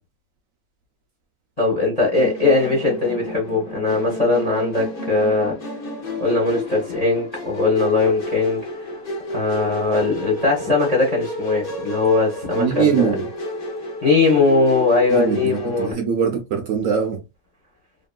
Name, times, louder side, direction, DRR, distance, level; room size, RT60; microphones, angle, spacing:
voice 1, 1.6-5.6 6.2-8.6 9.3-13.1 14.0-16.0, left 3 dB, 30° left, 0.7 m, -20 dB
Musical instrument, 2.1-15.9, left 1 dB, 75° left, 0.5 m, -31 dB
voice 2, 12.5-13.3 15.1-17.2, right 7 dB, 75° right, 0.7 m, -22 dB
2.9 x 2.6 x 2.2 m
omnidirectional pair, 1.9 m